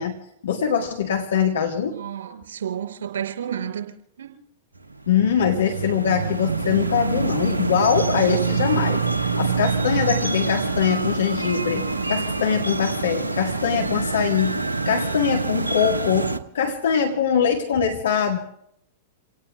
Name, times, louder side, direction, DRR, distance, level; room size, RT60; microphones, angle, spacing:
voice 1, 0.0-2.0 5.1-9.0 9.4-14.5 14.9-18.4, left 7 dB, 65° left, 2 dB, 1.7 m, -22 dB
voice 2, 1.9-3.9 4.2-4.3, right 9 dB, 65° right, 4 dB, 4.9 m, -31 dB
Bells Harnosand, 4.8-16.4, right 4 dB, 80° right, 1.0 m, -26 dB
29.5 x 18.5 x 2.4 m, 0.73 s
figure-of-eight pair, 100°, 0 cm